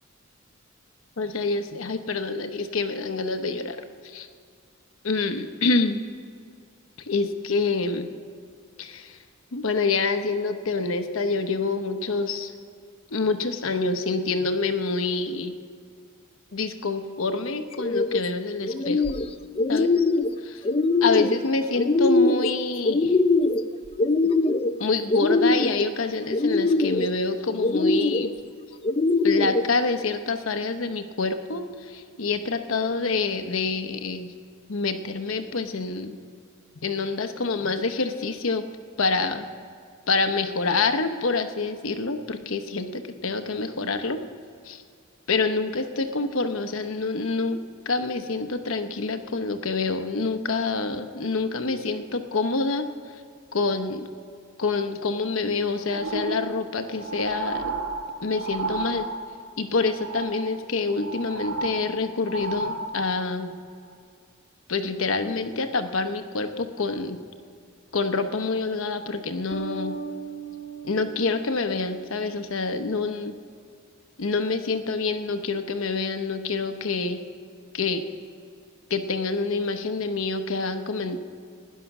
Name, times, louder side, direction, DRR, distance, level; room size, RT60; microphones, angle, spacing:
voice 1, 1.2-3.8 4.0-4.3 5.0-6.0 7.1-8.1 8.8-9.2 9.5-12.5 13.1-15.5 16.5-19.0 19.7-19.9 20.4-20.6 21.0-23.1 24.8-28.3 29.2-34.3 34.7-36.2 36.8-38.6 39.0-39.5 40.1-44.2 44.6-44.8 45.3-47.6 47.9-52.9 53.5-54.1 54.6-57.7 58.2-59.1 59.6-63.6 64.7-67.2 67.9-70.0 70.8-73.3 74.2-77.2 77.7-78.0 78.9-81.2, left 3 dB, 75° left, 8 dB, 0.9 m, -27 dB
sound 1, 17.7-18.2 18.6-19.3 19.6-20.3 20.6-21.4 21.8-22.5 22.8-23.6 24.0-24.7 25.1-25.8 26.3-27.1 27.6-28.3 28.8-29.6, left 3 dB, 30° left, 0.5 m, -22 dB
sound 2, 55.8-59.5 59.8-60.6 60.9-63.3 63.9-64.0, right 3 dB, 75° right, 1.2 m, -33 dB
sound 3, 69.5-72.9, right 5 dB, 60° left, 1.2 m, -38 dB
16.5 x 10.5 x 6.0 m, 2.2 s
head